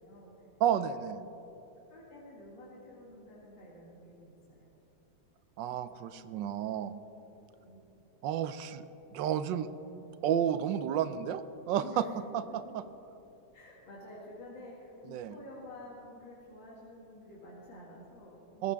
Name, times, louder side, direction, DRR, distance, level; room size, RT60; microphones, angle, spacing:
voice 1, 0.0-0.3 1.9-4.7 7.5-7.8 11.8-12.1 13.5-18.7, left 1 dB, 85° left, -7 dB, 2.9 m, -50 dB
voice 2, 0.6-1.2 5.6-6.9 8.2-8.8 9.1-9.7 10.2-12.1 12.3-12.8 15.1-15.3 18.6-18.7, right 9 dB, 80° right, 13 dB, 1.3 m, -31 dB
19.0 x 14.5 x 3.5 m, 2.9 s
omnidirectional pair, 2.0 m